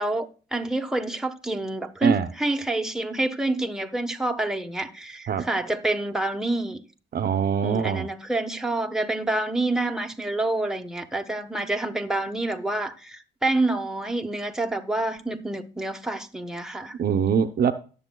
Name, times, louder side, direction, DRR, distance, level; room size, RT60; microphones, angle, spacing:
voice 1, 0.0-6.8 7.6-17.0, right 2 dB, 5° right, 1.0 m, -27 dB
voice 2, 7.1-8.1 17.0-17.7, right 7 dB, 50° right, 0.7 m, -23 dB
18.0 x 7.1 x 2.2 m
cardioid pair, 90°, 20 cm